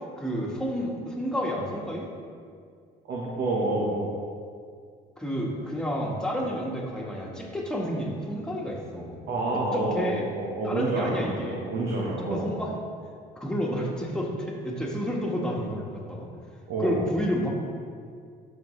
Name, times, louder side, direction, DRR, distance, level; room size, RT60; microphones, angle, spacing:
voice 1, 0.2-2.1 5.2-9.2 9.5-10.3 10.6-12.7 13.3-16.3 16.8-17.5, equal, 5° left, -3 dB, 1.5 m, -30 dB
voice 2, 3.1-4.2 9.3-12.5 16.7-17.1, right 2 dB, 70° right, -4 dB, 1.2 m, -28 dB
12.5 x 4.4 x 3.2 m, 2.1 s
cardioid pair, 110°, 17 cm